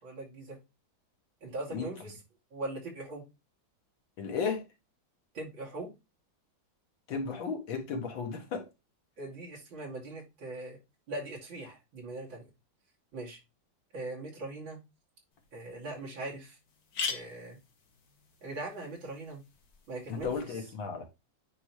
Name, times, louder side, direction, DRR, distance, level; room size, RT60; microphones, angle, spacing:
voice 1, 0.0-0.6 1.4-2.1 2.5-3.2 5.3-5.9 9.2-10.8 11.1-12.4 13.1-13.4 13.9-14.8 15.5-16.6 17.1-17.6 18.4-19.4 19.9-20.5, right 2 dB, 75° right, 3.5 m, -40 dB
voice 2, 4.2-4.7 7.1-8.7 20.1-21.1, left 5 dB, 80° left, 2.2 m, -34 dB
sound 1, 15.4-15.5 15.9-16.0 16.3-16.4 16.7-20.5, left 5 dB, 55° left, 1.6 m, -41 dB
9.4 x 3.4 x 3.1 m
omnidirectional pair, 2.1 m